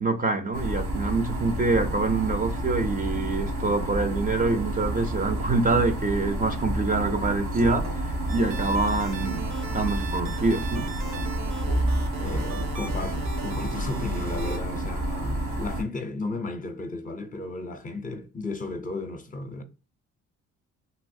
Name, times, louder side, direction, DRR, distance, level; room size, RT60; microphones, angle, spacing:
voice 1, 0.0-10.9, right 3 dB, 30° right, 0.5 m, -26 dB
sound 1, 0.5-15.8, right 1 dB, 85° right, 1.4 m, -29 dB
sound 2, 8.3-14.6, right 5 dB, 65° right, 0.8 m, -40 dB
voice 2, 12.2-19.6, left 3 dB, 25° left, 0.6 m, -34 dB
3.2 x 2.7 x 2.6 m
cardioid pair, 90°, 30 cm